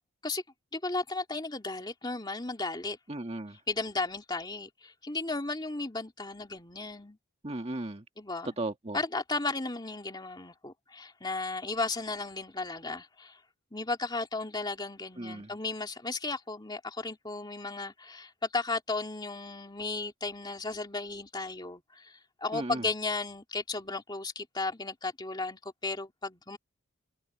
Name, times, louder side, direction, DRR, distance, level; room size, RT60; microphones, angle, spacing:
voice 1, 0.7-3.0 3.7-7.2 8.2-8.5 8.9-13.4 13.7-26.6, left 3 dB, 20° left, 2.6 m, -35 dB
voice 2, 3.1-3.6 7.4-8.0 8.4-9.0 15.2-15.5 22.5-22.9, right 2 dB, 30° right, 1.8 m, -36 dB
head